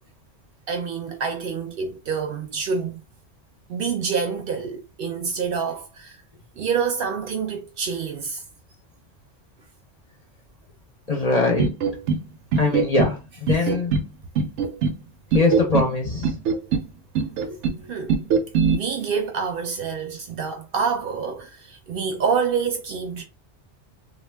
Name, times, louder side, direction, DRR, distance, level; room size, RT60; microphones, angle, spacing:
voice 1, 0.7-3.0 3.7-6.2 6.6-8.4 13.6-13.7 17.9-18.2 18.7-23.2, right 6 dB, 60° right, 0.7 m, -27 dB
voice 2, 11.1-11.7 12.6-13.9 15.3-16.4 17.4-17.5, left 3 dB, 40° left, 0.6 m, -22 dB
sound 1, 11.6-12.2 12.5-13.1 13.5-14.1 14.4-15.0 15.3-15.9 16.2-16.9 17.2-17.8 18.1-18.8, right 5 dB, 85° right, 0.9 m, -21 dB
2.3 x 2.3 x 3.3 m
omnidirectional pair, 1.2 m